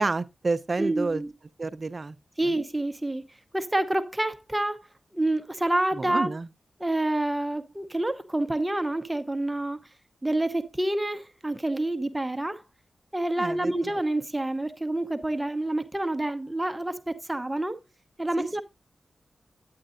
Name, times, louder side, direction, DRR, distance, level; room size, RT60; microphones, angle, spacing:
voice 1, 0.0-1.2 1.6-2.2 2.4-2.6 6.0-6.5 13.4-13.7 18.4-18.6, right 3 dB, 45° right, 0.6 m, -29 dB
voice 2, 0.8-1.3 2.4-3.2 3.5-4.8 5.1-6.3 6.8-9.8 10.2-12.6 13.1-17.8 18.2-18.6, right 1 dB, 15° right, 0.8 m, -28 dB
10.0 x 8.6 x 2.5 m
cardioid pair, 70°, 0 cm